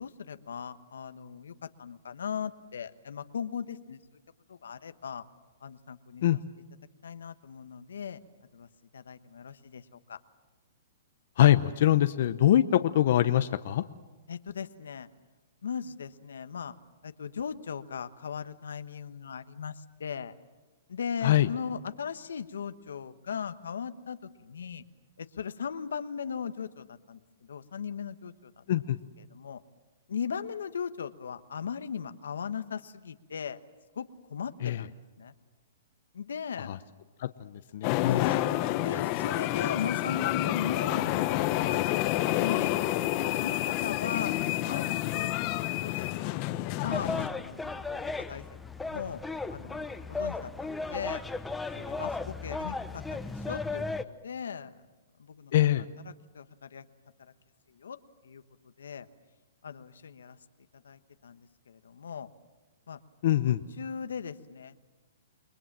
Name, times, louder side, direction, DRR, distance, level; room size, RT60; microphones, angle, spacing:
voice 1, 0.0-4.0 4.5-5.3 5.6-6.2 7.0-8.2 8.5-10.2 14.3-15.1 15.6-16.7 17.0-20.3 20.9-24.8 25.2-28.6 29.2-29.6 30.1-33.6 33.9-35.3 36.1-36.7 38.1-38.5 38.8-42.8 43.3-46.5 46.8-48.4 48.8-49.2 49.5-51.2 51.7-54.8 55.2-55.5 55.8-56.9 57.2-57.3 57.7-58.0 58.2-58.4 58.8-59.1 59.6-60.4 60.7-62.3 62.9-63.0 63.5-64.9, left 7 dB, 90° left, 10 dB, 1.2 m, -38 dB
voice 2, 11.4-13.8 21.2-21.5 28.7-29.0 34.6-34.8 36.6-36.8 37.2-38.3 55.5-55.9 63.2-63.6, left 12 dB, 60° left, 10 dB, 0.8 m, -24 dB
sound 1, 37.8-47.3, left 15 dB, 35° left, 1.0 m, -29 dB
sound 2, 46.8-54.0, left 3 dB, 5° left, 0.9 m, -35 dB
29.0 x 21.0 x 7.5 m, 1.2 s
hypercardioid pair, 150°, 0 cm